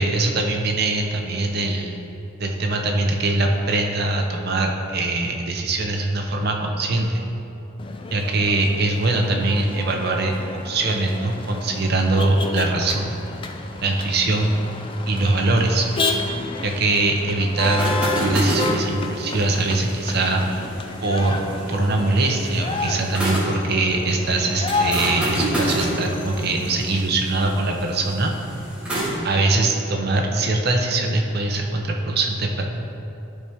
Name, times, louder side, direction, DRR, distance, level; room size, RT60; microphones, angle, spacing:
voice 1, 0.0-2.0 2.4-7.2 8.1-10.3 10.6-13.2 13.8-14.5 15.1-15.9 16.6-20.7 21.0-28.3 29.2-32.6, right 2 dB, 45° right, 2 dB, 0.7 m, -22 dB
Motor vehicle (road), 7.8-27.0, left 3 dB, 25° left, 0.3 m, -31 dB
sound 1, 17.8-23.6 24.7-29.2, right 1 dB, 5° right, 1.6 m, -28 dB
11.5 x 4.5 x 3.5 m, 2.8 s
head